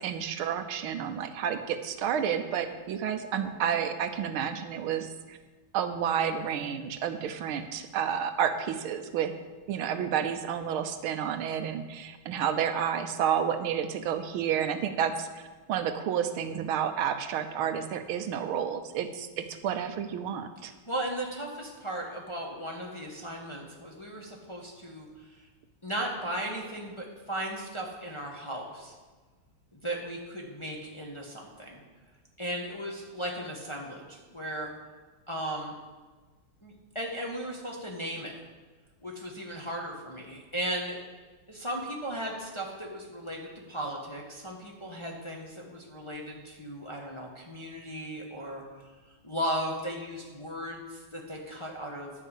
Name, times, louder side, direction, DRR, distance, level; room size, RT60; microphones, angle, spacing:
voice 1, 0.0-5.4 5.7-9.3 9.7-15.4 15.7-20.7, right 8 dB, 90° right, 8 dB, 1.7 m, -30 dB
voice 2, 20.9-25.4 25.8-28.9 29.7-31.8 32.4-34.7 35.3-35.8 36.6-38.3 39.0-41.0 41.5-48.6 49.2-52.1, right 1 dB, 20° left, -1 dB, 1.1 m, -36 dB
11.0 x 5.6 x 8.3 m, 1.3 s
omnidirectional pair, 2.2 m